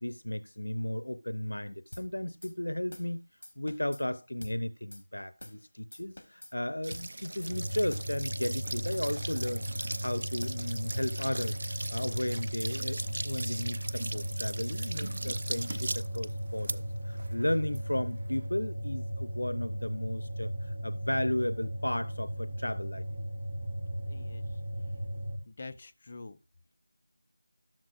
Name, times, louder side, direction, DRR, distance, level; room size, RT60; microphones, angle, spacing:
voice 1, 0.0-3.2 3.6-11.6 11.9-23.0, left 1 dB, 90° left, 0.6 m, -34 dB
sound 1, 1.9-2.1 2.4-2.5 2.9-3.1 3.4-4.0 4.4-4.6 4.9-5.0 5.4-5.6 5.9-6.5 6.9-7.1 7.4-7.5 7.9-8.1 8.4-9.0 9.4-9.6 9.9-10.1 10.4-10.6 10.9-11.6, left 1 dB, 70° left, 1.3 m, -47 dB
sound 2, 6.8-18.5, right 2 dB, 55° right, 0.4 m, -40 dB
sound 3, 7.5-25.4, equal, 20° right, 1.6 m, -36 dB
voice 2, 24.1-24.6 25.5-26.4, left 3 dB, 30° left, 0.4 m, -46 dB
12.5 x 7.3 x 2.5 m
figure-of-eight pair, 175°, 0 cm